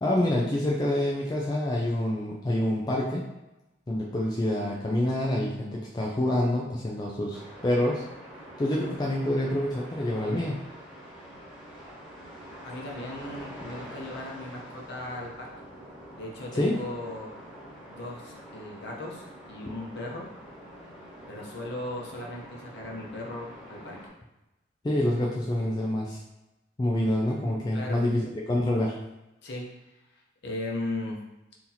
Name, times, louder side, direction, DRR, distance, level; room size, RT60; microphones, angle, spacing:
voice 1, 0.0-3.2 3.9-8.0 8.6-10.6 16.6-16.8 24.8-26.2 26.8-29.0, left 1 dB, 20° left, -3 dB, 0.3 m, -27 dB
sound 1, 7.3-24.1, equal, 5° right, 1.0 m, -46 dB
voice 2, 12.6-15.5 16.1-17.3 17.9-20.3 21.3-24.0 27.7-28.0 29.4-29.6 30.4-31.2, left 1 dB, 55° left, -2 dB, 0.7 m, -37 dB
2.8 x 2.8 x 3.9 m, 0.96 s
head